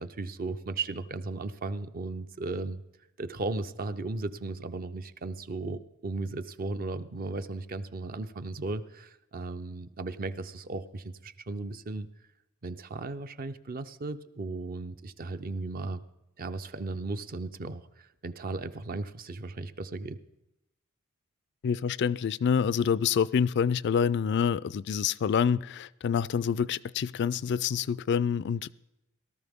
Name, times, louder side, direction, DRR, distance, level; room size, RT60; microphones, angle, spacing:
voice 1, 0.0-2.8 3.2-12.1 12.6-16.0 16.4-20.2, right 3 dB, 45° right, 0.6 m, -36 dB
voice 2, 21.6-28.8, left 7 dB, 55° left, 0.3 m, -27 dB
18.0 x 13.0 x 3.6 m
head